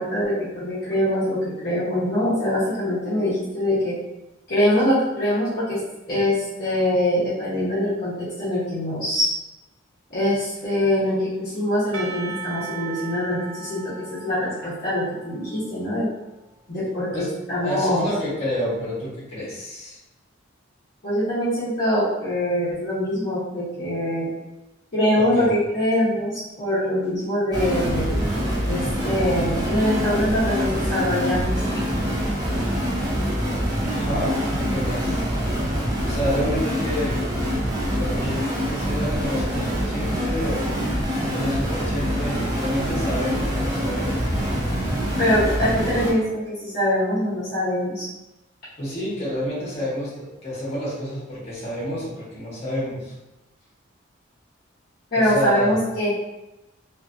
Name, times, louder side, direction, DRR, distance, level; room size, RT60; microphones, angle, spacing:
voice 1, 0.0-4.0 4.5-5.8 6.1-9.3 10.1-16.1 16.7-18.1 21.0-24.3 24.9-28.3 28.7-31.6 45.2-48.1 55.1-56.1, left 1 dB, 50° left, -11 dB, 0.8 m, -23 dB
Percussion / Church bell, 11.9-16.3, right 5 dB, 85° right, 0.5 m, -38 dB
voice 2, 17.6-20.0 25.2-25.5 33.9-35.2 36.0-37.3 37.8-40.7 41.2-44.3 48.8-53.1 55.1-55.7, equal, 30° left, -8 dB, 1.1 m, -29 dB
sound 1, 27.5-46.1, equal, 20° right, 0.6 m, -25 dB
2.6 x 2.4 x 2.4 m, 0.99 s
head